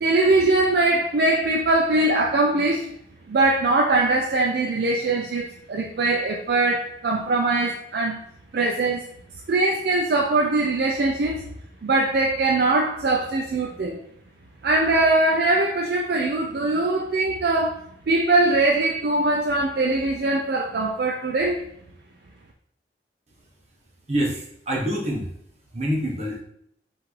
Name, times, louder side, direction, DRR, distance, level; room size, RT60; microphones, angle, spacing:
voice 1, 0.0-2.9 3.3-8.2 8.5-9.1 9.5-11.5 11.8-14.0 14.6-17.8 18.1-21.6, right 2 dB, 60° right, 0.4 m, -21 dB
voice 2, 24.1-25.3 25.7-26.4, equal, 35° right, 1.0 m, -26 dB
5.7 x 2.5 x 3.1 m
head